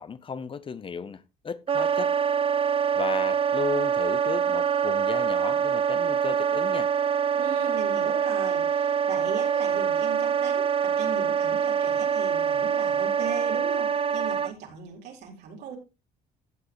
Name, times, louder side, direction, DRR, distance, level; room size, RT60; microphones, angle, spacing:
voice 1, 0.0-2.2 2.9-6.9, left 6 dB, 30° left, 0.7 m, -35 dB
Wind instrument woodwind instrument, 1.7-14.5, right 7 dB, 35° right, 0.5 m, -25 dB
voice 2, 7.3-15.8, right 6 dB, 80° right, 4.3 m, -38 dB
15.0 x 7.6 x 3.1 m
cardioid pair, 110°, 17 cm